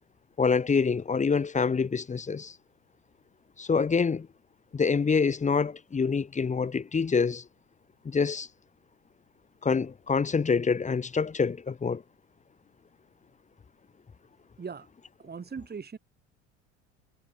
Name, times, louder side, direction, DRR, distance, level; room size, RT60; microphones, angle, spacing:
voice 1, 0.4-2.5 3.6-4.3 4.7-7.4 8.0-8.5 9.6-12.0, left 5 dB, 20° left, 1.1 m, -26 dB
voice 2, 15.2-16.0, right 5 dB, 25° right, 3.5 m, -39 dB
hypercardioid pair, 70°, 36 cm